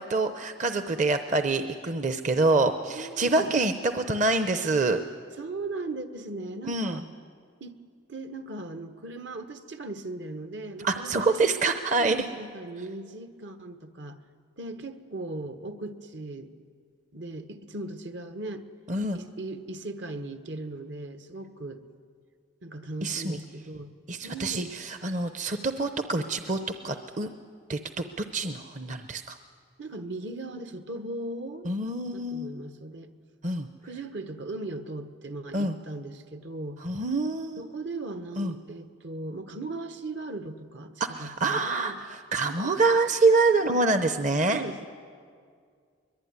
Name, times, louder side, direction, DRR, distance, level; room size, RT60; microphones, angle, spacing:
voice 1, 0.0-5.0 6.7-7.0 10.8-12.2 18.9-19.2 23.0-23.4 24.1-26.6 26.8-27.3 27.7-29.4 31.7-32.5 33.4-33.7 35.5-35.7 36.8-37.6 38.4-38.5 41.0-44.6, right 3 dB, 40° right, 8 dB, 0.8 m, -26 dB
voice 2, 2.9-3.6 4.9-5.0 5.3-7.1 7.6-7.7 8.1-11.5 12.0-14.2 14.6-16.5 17.1-18.6 19.1-21.8 22.6-23.9 24.2-24.8 29.8-31.7 32.1-33.1 33.8-36.8 37.6-42.0 42.4-42.7 43.6-43.8 44.5-44.9, right 2 dB, 65° right, 9 dB, 1.4 m, -38 dB
23.0 x 22.5 x 9.6 m, 2.1 s
head